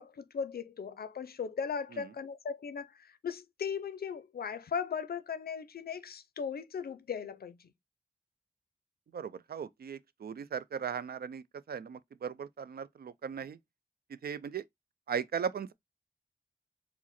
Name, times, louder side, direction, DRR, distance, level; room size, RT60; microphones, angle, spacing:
voice 1, 0.0-7.6, left 6 dB, 85° left, 0.4 m, -38 dB
voice 2, 9.1-13.6 14.1-14.6 15.1-15.7, right 7 dB, 85° right, 0.4 m, -38 dB
4.6 x 2.0 x 4.1 m
wide cardioid pair, 55°, 16 cm